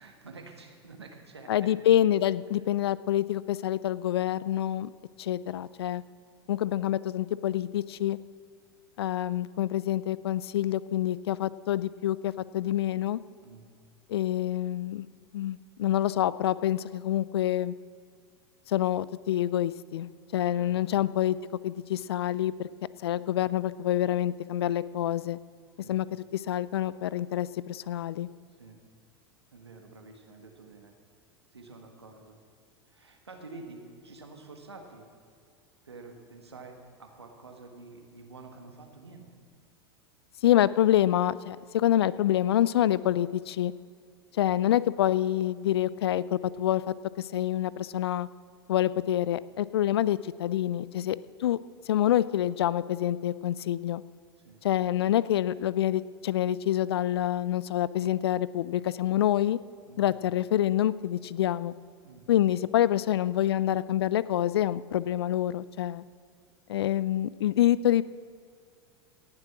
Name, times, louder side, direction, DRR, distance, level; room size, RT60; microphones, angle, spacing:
voice 1, 0.0-1.8 13.4-13.7 20.5-21.0 25.8-25.9 28.6-28.8 29.5-30.9 31.5-32.4 32.9-35.0 35.8-39.3 54.4-54.6 59.9-60.1 62.0-62.3, right 3 dB, 90° right, 3 dB, 1.7 m, -48 dB
voice 2, 1.5-4.9 5.2-6.0 6.5-8.2 9.0-13.2 14.1-15.1 15.3-17.7 18.7-21.4 21.6-22.7 23.0-25.4 25.9-28.3 40.4-43.7 44.4-48.3 48.7-51.6 51.9-54.0 54.6-59.6 60.0-61.7 62.3-66.0 66.7-68.0, left 12 dB, 75° left, 18 dB, 0.4 m, -27 dB
18.0 x 7.6 x 6.0 m, 2.2 s
hypercardioid pair, 90°, 13 cm